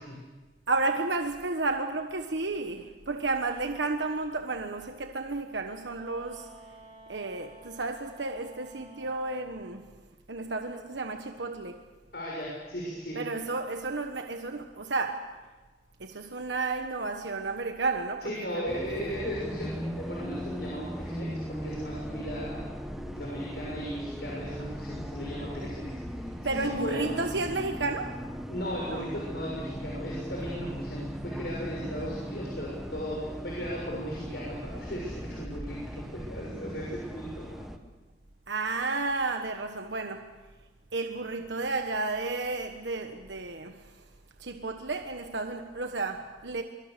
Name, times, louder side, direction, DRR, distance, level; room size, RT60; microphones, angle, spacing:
voice 1, 0.7-6.5 7.1-9.9 10.3-11.8 13.1-15.4 16.0-18.7 25.6-25.8 26.4-28.2 28.8-29.0 38.5-40.4 40.9-44.0 44.4-46.6, right 3 dB, 80° right, 1.3 m, -32 dB
Wind instrument woodwind instrument, 5.9-9.6, right 1 dB, 30° right, 4.6 m, -52 dB
voice 2, 12.1-13.2 18.2-22.6 23.1-27.2 28.5-35.8 36.1-37.6, equal, 60° left, 6.5 m, -36 dB
Bus, 18.7-37.8, equal, ahead, 1.2 m, -38 dB
24.5 x 24.0 x 6.8 m
head